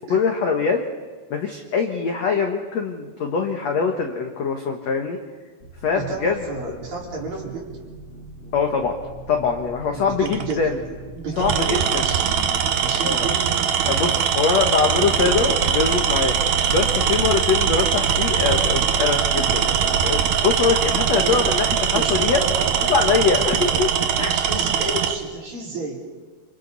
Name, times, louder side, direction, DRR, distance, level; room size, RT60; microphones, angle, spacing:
voice 1, 0.1-0.8 1.3-5.2 5.8-6.4 6.7-6.8 8.5-9.0 9.3-10.8 11.4-12.0 13.0-13.3 13.8-22.4 22.9-23.9 24.2-24.4, left 5 dB, 65° left, 3 dB, 1.8 m, -23 dB
sound 1, 5.6-23.9, right 1 dB, 20° left, 2.8 m, -42 dB
voice 2, 6.0-7.7 9.9-12.4 12.8-13.4 21.2-21.4 21.9-23.8 24.3-26.0, right 3 dB, 50° right, -3 dB, 6.2 m, -32 dB
Tools, 10.2-10.5 11.4-25.2, right 8 dB, 80° right, 1.6 m, -21 dB
29.5 x 27.5 x 4.1 m, 1.4 s
omnidirectional pair, 5.1 m